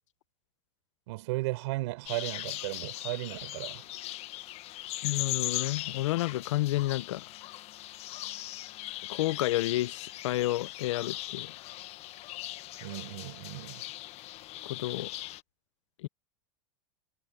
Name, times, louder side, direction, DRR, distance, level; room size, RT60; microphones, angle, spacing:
voice 1, 1.1-3.9 12.8-13.8, right 21 dB, 70° right, 6.1 m, -35 dB
sound 1, 2.1-15.4, left 16 dB, 40° left, 1.4 m, -39 dB
voice 2, 5.0-7.2 9.1-11.5 14.6-15.1 16.0-16.1, left 16 dB, 80° left, 0.8 m, -30 dB
supercardioid pair, 130°, 15 cm